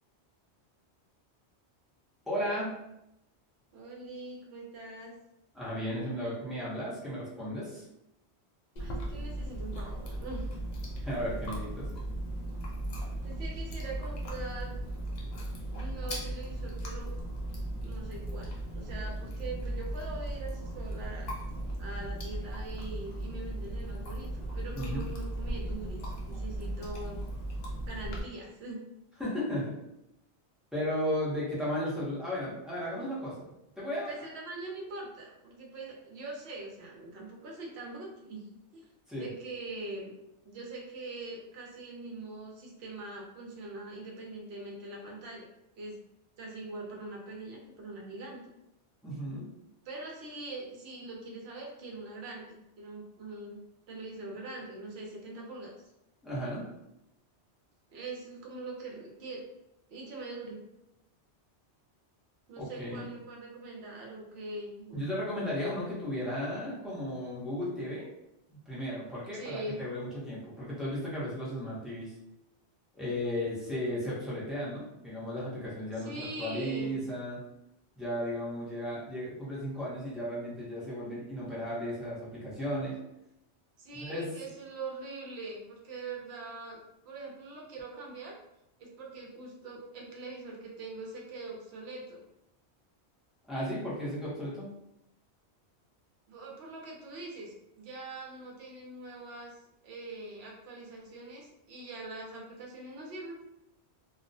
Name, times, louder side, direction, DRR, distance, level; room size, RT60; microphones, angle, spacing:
voice 1, 2.3-2.8 5.5-7.9 11.0-11.9 21.5-21.6 24.7-25.0 29.2-29.7 30.7-33.3 33.8-34.1 39.1-39.3 49.0-49.4 56.2-56.6 62.6-63.1 64.9-68.1 68.5-72.1 72.9-77.4 78.0-82.9 84.0-84.3 93.5-94.7, equal, ahead, -9 dB, 0.6 m, -35 dB
voice 2, 3.7-5.1 8.8-10.5 13.2-14.7 15.8-17.1 17.8-21.3 21.8-27.2 27.9-28.9 34.1-38.4 38.7-40.1 40.4-45.5 45.8-46.0 46.4-48.4 49.9-53.6 53.9-55.7 57.9-59.4 59.9-60.6 62.5-65.3 69.3-69.8 76.0-77.0 83.8-86.8 87.0-88.3 88.8-92.2 96.3-103.4, right 2 dB, 70° right, -2 dB, 0.9 m, -43 dB
Chewing mastication, 8.8-28.2, right 1 dB, 55° left, 0.5 m, -37 dB
2.3 x 2.1 x 2.6 m, 0.86 s
omnidirectional pair, 1.1 m